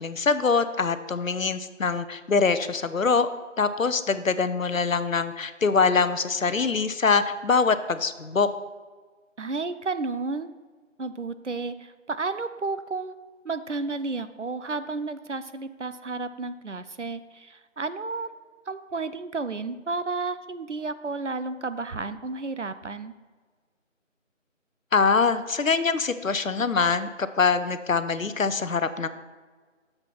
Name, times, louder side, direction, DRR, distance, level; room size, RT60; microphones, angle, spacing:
voice 1, 0.0-3.3 3.6-8.5 24.9-29.1, left 5 dB, 85° left, 12 dB, 0.7 m, -24 dB
voice 2, 9.4-10.5 11.0-13.2 13.4-18.3 18.7-23.1, right 3 dB, 65° right, 12 dB, 0.5 m, -32 dB
6.8 x 6.8 x 4.5 m, 1.4 s
figure-of-eight pair, 175°, 39 cm